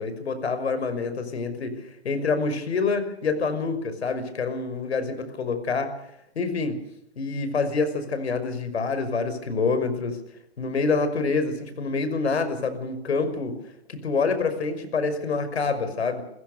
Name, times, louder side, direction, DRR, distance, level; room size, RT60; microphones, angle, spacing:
voice 1, 0.0-5.9 6.4-6.8 7.2-10.2 10.6-13.6 13.9-16.2, left 4 dB, 85° left, 10 dB, 5.8 m, -26 dB
29.5 x 16.0 x 6.8 m, 0.77 s
hypercardioid pair, 170°, 32 cm